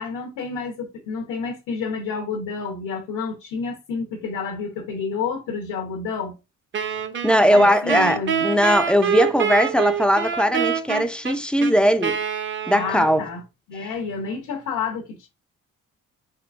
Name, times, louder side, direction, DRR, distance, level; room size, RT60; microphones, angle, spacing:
voice 1, 0.0-6.3 7.5-8.5 12.7-13.4 13.7-15.3, left 5 dB, 85° left, 0.8 m, -29 dB
Wind instrument woodwind instrument, 6.7-13.3, right 7 dB, 40° right, 0.6 m, -26 dB
voice 2, 7.2-12.2 12.7-13.3, equal, 5° left, 0.3 m, -19 dB
3.7 x 3.2 x 2.3 m
cardioid pair, 90°, 30 cm